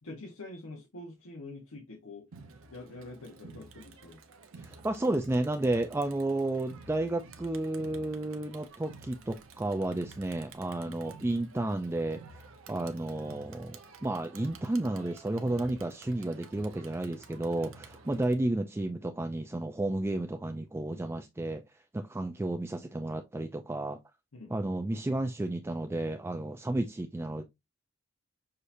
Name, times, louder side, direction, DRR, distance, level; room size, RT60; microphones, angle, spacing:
voice 1, 0.0-2.2 2.7-4.2 18.1-18.3 24.3-24.5, left 2 dB, 85° left, 1.0 m, -45 dB
Crowd, 2.3-18.3, right 4 dB, 75° right, 0.7 m, -52 dB
voice 2, 4.6-12.2 12.7-21.6 21.9-24.0 24.5-27.4, right 2 dB, 10° right, 0.3 m, -32 dB
6.4 x 2.8 x 2.6 m
head